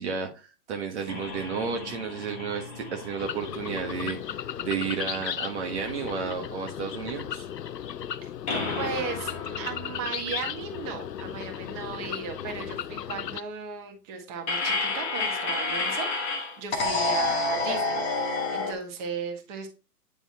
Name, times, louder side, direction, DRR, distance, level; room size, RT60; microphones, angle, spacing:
voice 1, 0.0-4.4 4.6-7.5, right 6 dB, 45° right, 3 dB, 1.4 m, -32 dB
sound 1, 1.1-4.6 4.9-5.0 8.5-11.6 14.5-18.7, left 3 dB, 10° left, 0.5 m, -30 dB
sound 2, 3.2-13.4, left 9 dB, 85° left, 0.7 m, -36 dB
voice 2, 8.8-18.0 18.5-19.7, right 5 dB, 25° right, 2 dB, 1.7 m, -36 dB
9.6 x 3.6 x 4.2 m, 0.31 s
hypercardioid pair, 140°, 48 cm